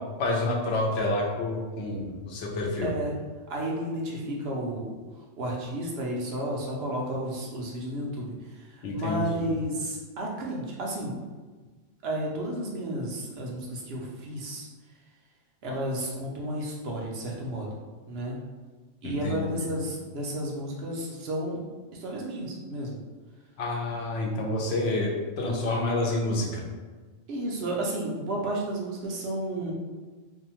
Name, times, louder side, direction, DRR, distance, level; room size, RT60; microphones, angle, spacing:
voice 1, 0.2-2.9 8.8-9.5 19.0-19.7 23.6-26.6, left 2 dB, 75° left, -2 dB, 0.8 m, -28 dB
voice 2, 2.8-3.2 3.5-4.9 5.4-11.2 12.0-14.7 15.6-17.7 18.1-18.4 19.0-21.6 21.9-23.0 27.3-29.7, right 1 dB, 70° right, -2 dB, 0.8 m, -32 dB
2.6 x 2.1 x 2.9 m, 1.3 s
omnidirectional pair, 1.1 m